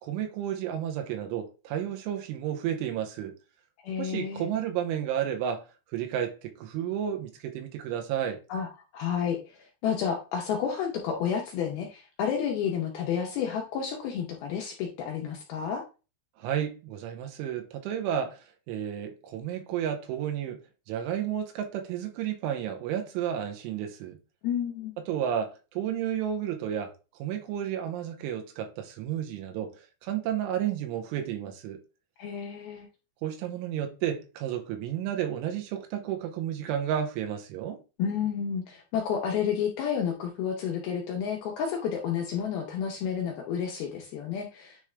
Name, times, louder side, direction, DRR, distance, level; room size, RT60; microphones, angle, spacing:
voice 1, 0.0-3.3 4.0-5.6 5.9-8.4 16.4-18.4 18.7-20.6 20.9-24.2 25.0-29.7 30.0-31.8 33.2-37.8, right 10 dB, 85° right, 3.4 m, -32 dB
voice 2, 3.8-4.5 8.5-15.8 24.4-24.9 32.2-32.9 38.0-44.9, left 7 dB, 80° left, 2.2 m, -31 dB
9.8 x 3.6 x 3.2 m
omnidirectional pair, 5.6 m